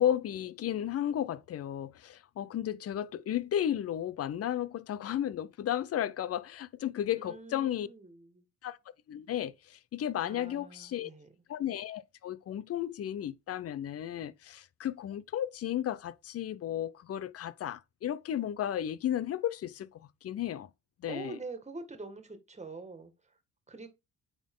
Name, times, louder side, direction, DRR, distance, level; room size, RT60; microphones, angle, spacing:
voice 1, 0.0-7.9 8.6-8.8 9.1-11.1 11.5-20.7 21.0-21.4, left 11 dB, 50° left, 0.6 m, -34 dB
voice 2, 7.2-8.4 10.2-11.3 21.1-23.1 23.7-23.9, right 3 dB, 20° right, 1.9 m, -44 dB
9.1 x 3.8 x 3.7 m
cardioid pair, 90°, 30 cm